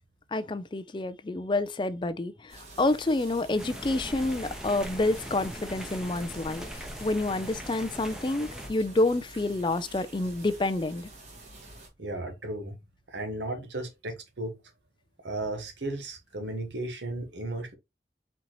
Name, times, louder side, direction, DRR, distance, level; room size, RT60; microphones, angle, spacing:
voice 1, 0.3-11.1, left 2 dB, 25° left, 0.4 m, -28 dB
sound 1, 2.5-11.9, right 2 dB, 40° right, 1.8 m, -47 dB
sound 2, 3.6-8.7, equal, 5° right, 0.8 m, -41 dB
voice 2, 12.0-12.8 13.1-14.6 15.2-17.7, right 2 dB, 85° right, 1.2 m, -35 dB
4.4 x 4.0 x 2.9 m
head